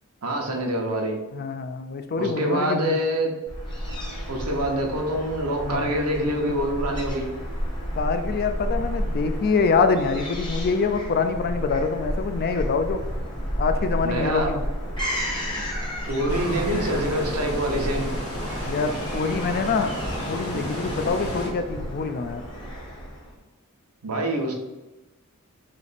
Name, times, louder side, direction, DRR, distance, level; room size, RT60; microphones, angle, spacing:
voice 1, 0.2-1.1 2.2-3.3 4.3-7.3 14.0-14.5 16.1-18.1 24.0-24.5, right 1 dB, 85° right, 1 dB, 0.8 m, -25 dB
voice 2, 1.3-3.0 5.6-5.9 7.9-13.0 13.6-14.6 18.6-19.9 20.3-22.4, left 4 dB, 45° left, 9 dB, 0.3 m, -25 dB
Fowl / Gull seagull, 3.5-23.3, equal, 20° left, 0.9 m, -32 dB
sound 1, 16.3-21.5, equal, 70° left, 1.4 m, -32 dB
3.3 x 3.0 x 4.0 m, 1.1 s
head